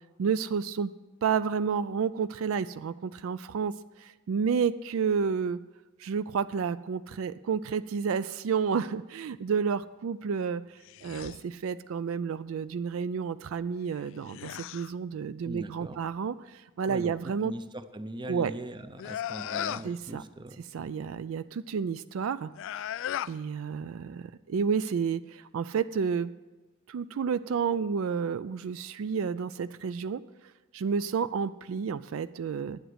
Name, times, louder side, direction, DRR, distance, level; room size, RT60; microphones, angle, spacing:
voice 1, 0.2-0.9 1.2-5.6 6.0-17.5 18.3-18.5 19.8-20.2 20.7-22.5 23.3-26.3 26.9-30.2 30.7-32.8, right 6 dB, 70° right, 15 dB, 0.4 m, -30 dB
sound 1, 10.8-11.4 13.9-14.9 19.0-19.9 22.5-23.4, left 10 dB, 65° left, 0.3 m, -36 dB
voice 2, 15.4-16.0 16.8-17.1 17.4-20.6, right 1 dB, 20° right, 10 dB, 0.7 m, -40 dB
10.0 x 8.0 x 7.9 m, 1.1 s
head